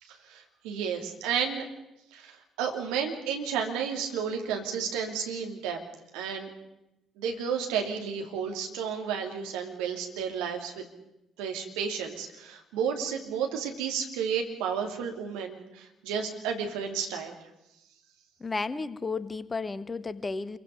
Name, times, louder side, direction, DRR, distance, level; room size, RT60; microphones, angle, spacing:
voice 1, 0.0-1.7 2.1-5.8 6.1-6.5 7.2-10.8 11.4-17.4, right 7 dB, 65° right, 3 dB, 2.8 m, -32 dB
voice 2, 18.4-20.6, left 4 dB, 25° left, 17 dB, 1.0 m, -33 dB
27.5 x 23.0 x 5.3 m, 0.88 s
figure-of-eight pair, 45°, 0 cm